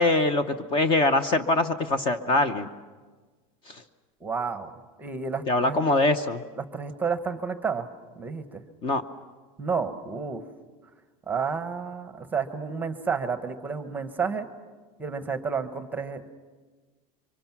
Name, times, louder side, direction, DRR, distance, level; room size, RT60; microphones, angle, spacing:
voice 1, 0.0-2.7 3.7-3.8 5.5-6.4 8.8-9.0, left 2 dB, 30° left, 11 dB, 0.8 m, -23 dB
voice 2, 4.2-4.7 5.0-5.8 6.6-7.9 8.2-8.6 9.6-10.4 11.3-14.5 15.0-16.3, right 5 dB, 10° right, 9 dB, 1.0 m, -30 dB
26.5 x 24.5 x 6.0 m, 1.4 s
supercardioid pair, 165°, 18 cm